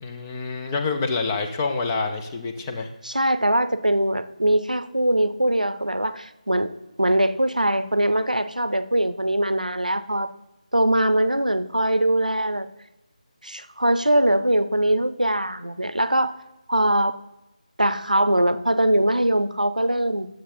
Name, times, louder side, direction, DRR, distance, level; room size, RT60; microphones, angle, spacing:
voice 1, 0.0-2.9, left 4 dB, 15° left, 4 dB, 0.6 m, -27 dB
voice 2, 3.0-6.7 7.0-10.3 10.7-12.7 13.4-16.3 16.7-17.2 17.8-20.3, right 1 dB, 90° right, 12 dB, 0.7 m, -22 dB
9.5 x 7.6 x 4.3 m, 0.97 s
figure-of-eight pair, 160°, 4 cm